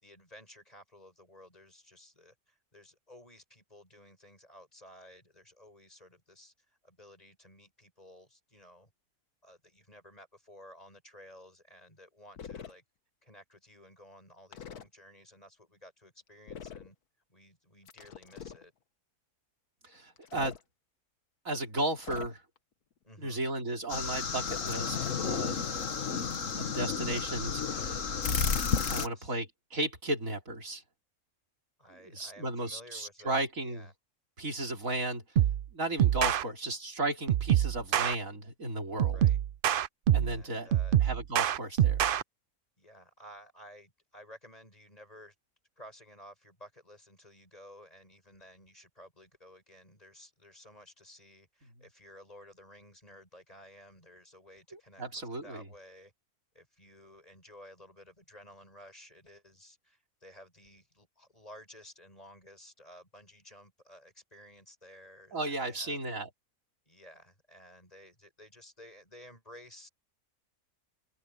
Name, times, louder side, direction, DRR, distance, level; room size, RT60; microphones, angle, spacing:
voice 1, 0.0-8.9 9.4-12.8 13.2-16.9 17.3-18.7 23.0-23.4 28.9-29.4 31.8-33.9 36.4-36.7 39.1-39.4 40.2-41.0 42.8-45.3 45.8-56.1 56.5-66.0 66.8-69.9, equal, 25° left, 6.6 m, -54 dB
sound 1, 12.4-12.7 14.5-14.9 16.5-16.9 17.9-18.6 20.2-20.6 22.0-22.6 24.4-25.3, left 7 dB, 85° left, 1.7 m, -45 dB
voice 2, 19.8-20.6 21.4-22.4 23.2-25.7 26.6-28.0 28.9-30.8 32.0-33.9 34.4-35.2 35.7-39.2 40.1-40.7 41.0-42.1 54.7-55.7 65.3-66.3, right 2 dB, 60° right, 4.1 m, -35 dB
sound 2, 23.9-29.1, left 6 dB, 60° left, 1.8 m, -32 dB
sound 3, 35.4-35.7 36.0-36.4 37.3-38.1 39.0-40.4 40.7-42.2, right 11 dB, 85° right, 0.4 m, -25 dB
omnidirectional pair, 1.6 m